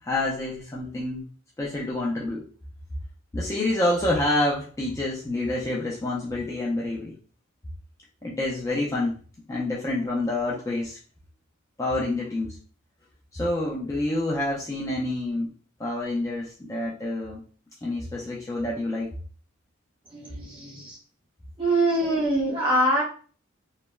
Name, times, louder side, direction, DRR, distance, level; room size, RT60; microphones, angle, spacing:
voice 1, 0.0-1.2 1.6-2.4 3.3-7.1 8.2-9.2 9.5-11.0 11.8-12.6 13.3-15.5 15.8-17.4 17.8-19.1, left 2 dB, 15° left, -5 dB, 0.3 m, -27 dB
voice 2, 20.1-21.0 21.6-23.0, right 1 dB, 25° right, -4 dB, 0.8 m, -24 dB
3.0 x 2.1 x 2.2 m, 0.40 s
head